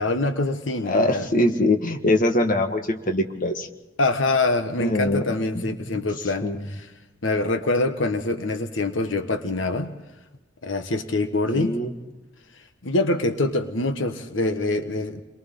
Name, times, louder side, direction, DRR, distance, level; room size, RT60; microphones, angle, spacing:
voice 1, 0.0-1.3 4.0-6.9 7.2-9.9 10.6-11.8 12.8-15.2, left 2 dB, 90° left, 7 dB, 1.4 m, -25 dB
voice 2, 0.8-3.7 4.8-6.0 6.4-6.6 11.5-11.9, left 1 dB, 45° left, 5 dB, 1.6 m, -23 dB
30.0 x 22.5 x 3.9 m, 1.1 s
head